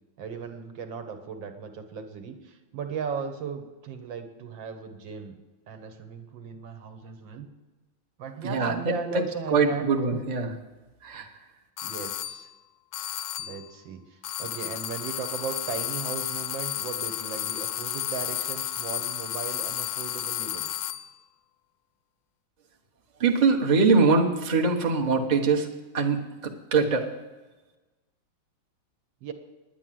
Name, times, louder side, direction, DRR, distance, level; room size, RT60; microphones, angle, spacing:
voice 1, 0.2-5.4 5.7-7.5 8.2-10.2 11.8-12.5 13.4-20.7 29.2-29.3, right 6 dB, 65° right, 6 dB, 1.7 m, -37 dB
voice 2, 8.4-10.5 11.0-11.3 23.2-25.7 25.9-27.1, right 4 dB, 30° right, 1 dB, 0.8 m, -23 dB
sound 1, 11.8-12.5 12.9-13.7 14.2-21.1, left 12 dB, 75° left, 1.2 m, -32 dB
10.0 x 10.0 x 7.6 m, 1.2 s
omnidirectional pair, 2.4 m